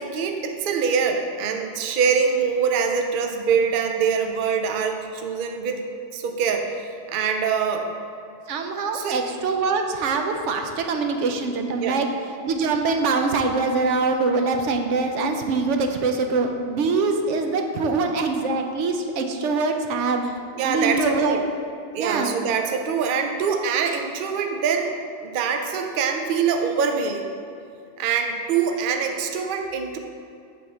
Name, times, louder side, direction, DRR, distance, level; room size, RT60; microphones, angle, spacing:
voice 1, 0.0-5.8 6.1-7.9 8.9-9.2 11.8-12.0 20.6-21.4 21.9-24.9 25.2-27.2 28.0-30.0, right 6 dB, 55° right, 4 dB, 0.6 m, -24 dB
voice 2, 8.5-12.1 12.4-20.2 20.6-21.4 22.0-22.3, right 4 dB, 80° right, 4 dB, 0.9 m, -23 dB
8.5 x 3.5 x 4.4 m, 2.5 s
omnidirectional pair, 1.2 m